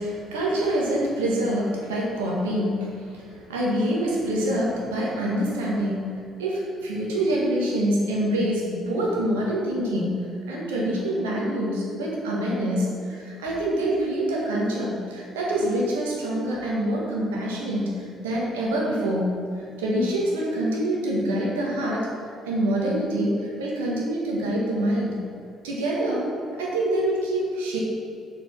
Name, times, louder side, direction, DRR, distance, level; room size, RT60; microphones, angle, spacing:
voice 1, 0.0-22.1 22.4-25.2 25.6-26.3 26.6-27.8, right 1 dB, 80° right, -4 dB, 1.5 m, -26 dB
6.8 x 5.0 x 5.7 m, 2.5 s
hypercardioid pair, 50°, 0 cm